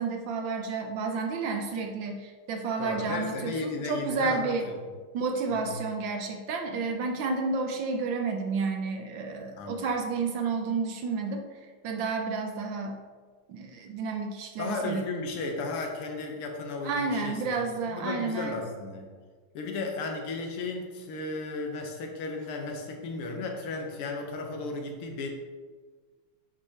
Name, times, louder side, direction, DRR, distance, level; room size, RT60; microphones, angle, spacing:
voice 1, 0.0-4.7 5.1-11.4 11.8-13.0 13.5-15.0 16.8-18.6, right 4 dB, 70° right, 4 dB, 1.2 m, -31 dB
voice 2, 2.8-4.7 5.5-5.8 9.5-9.8 14.6-17.5 17.9-19.1 19.5-25.3, left 3 dB, 90° left, 2 dB, 1.8 m, -34 dB
8.3 x 4.9 x 2.8 m, 1.5 s
omnidirectional pair, 2.4 m